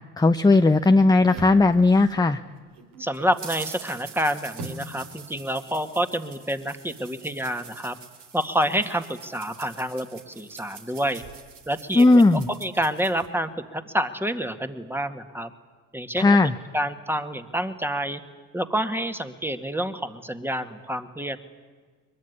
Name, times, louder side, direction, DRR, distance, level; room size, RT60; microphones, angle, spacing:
voice 1, 0.2-2.4 11.9-12.5 16.2-16.5, left 3 dB, 10° left, 7 dB, 0.9 m, -17 dB
sound 1, 0.5-2.4 2.8-13.3, right 5 dB, 70° right, 3.6 m, -43 dB
voice 2, 3.0-8.0 8.3-11.2 11.7-15.5 15.9-16.4 16.7-18.2 18.5-21.4, equal, 5° right, 8 dB, 2.0 m, -28 dB
22.5 x 22.0 x 9.8 m, 1.4 s
supercardioid pair, 70°, 36 cm